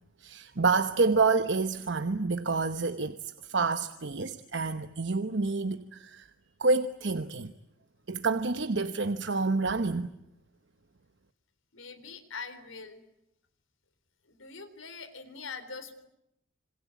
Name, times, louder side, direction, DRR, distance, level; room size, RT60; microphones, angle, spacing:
voice 1, 0.2-6.3 6.6-7.5 8.1-10.1, right 4 dB, 60° right, 1.0 m, -28 dB
voice 2, 11.7-13.0 14.3-16.1, left 5 dB, 85° left, 3.8 m, -43 dB
27.0 x 26.0 x 8.4 m
head